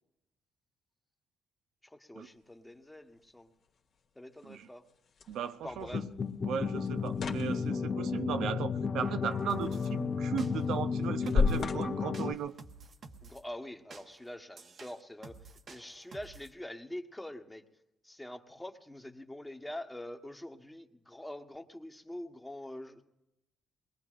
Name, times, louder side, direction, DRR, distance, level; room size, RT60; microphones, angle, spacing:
voice 1, 1.8-3.5 4.1-4.8 5.6-6.0 13.2-15.4 15.7-17.6 18.0-23.0, left 1 dB, 10° left, 1.3 m, -45 dB
sound 1, 2.2-13.2, left 4 dB, 60° left, 1.8 m, -38 dB
voice 2, 5.3-6.0 6.4-12.5, right 8 dB, 80° right, 0.6 m, -36 dB
sound 2, 5.8-12.3, left 5 dB, 45° left, 0.7 m, -33 dB
sound 3, 9.5-9.9 10.4-10.8 11.3-11.7 12.1-13.4 13.9-16.5, right 4 dB, 55° right, 1.1 m, -52 dB
23.0 x 20.5 x 2.5 m
cardioid pair, 90°, 0 cm